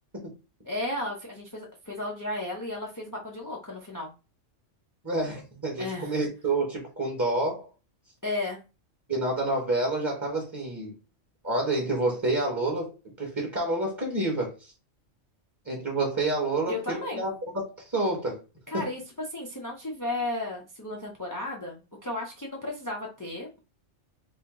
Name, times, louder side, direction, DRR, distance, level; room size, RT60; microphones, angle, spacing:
voice 1, 0.6-4.1 5.8-6.2 8.2-8.6 16.7-17.2 18.7-19.0 19.3-23.6, left 2 dB, 25° left, 0.5 m, -34 dB
voice 2, 5.0-7.7 9.1-10.9 11.4-12.9 13.2-14.7 15.6-18.4 18.7-18.9, right 2 dB, 15° right, 0.9 m, -28 dB
3.5 x 2.5 x 3.6 m
omnidirectional pair, 1.3 m